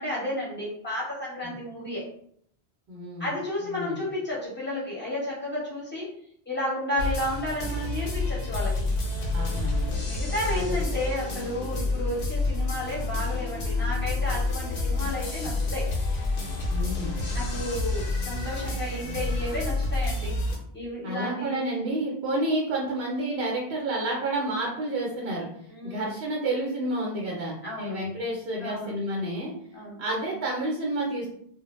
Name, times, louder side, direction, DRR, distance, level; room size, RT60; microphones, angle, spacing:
voice 1, 0.0-2.1 3.2-6.1 6.5-8.9 10.0-15.9 17.3-20.4 20.7-21.6 25.7-26.2 27.6-28.0 28.6-28.9 29.7-30.0, left 1 dB, 10° left, -6 dB, 0.9 m, -32 dB
voice 2, 2.9-3.3 3.6-4.0 9.3-9.9 10.4-10.7 16.7-17.2 21.0-25.5 25.8-29.5 30.0-31.3, right 1 dB, 70° right, -3 dB, 0.9 m, -30 dB
sound 1, 7.0-20.6, left 2 dB, 60° left, 0.8 m, -29 dB
2.1 x 2.1 x 3.0 m, 0.66 s
omnidirectional pair, 1.1 m